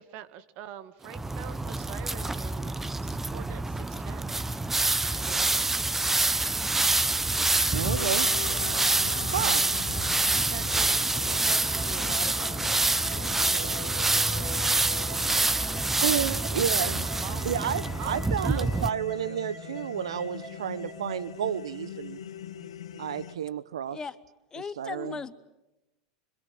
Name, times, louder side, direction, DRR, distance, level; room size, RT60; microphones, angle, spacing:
voice 1, 0.0-4.3 5.1-5.8 7.9-9.0 10.3-13.0 13.4-16.2 17.0-17.5 18.0-19.4 25.0-25.2, right 10 dB, 55° right, 2.0 m, -45 dB
sound 1, 1.1-18.9, right 2 dB, 10° right, 1.0 m, -26 dB
voice 2, 7.7-8.3 9.3-9.7 13.4-13.7 15.3-15.5 16.0-17.1 17.4-22.2 23.0-24.0 24.8-25.2, right 9 dB, 80° right, 0.9 m, -31 dB
sound 2, 7.8-23.3, left 10 dB, 80° left, 1.5 m, -42 dB
sound 3, 11.3-21.3, right 4 dB, 35° right, 3.2 m, -48 dB
voice 3, 24.5-25.4, left 5 dB, 20° left, 1.3 m, -37 dB
26.0 x 25.5 x 7.8 m
hypercardioid pair, 95°, 3 cm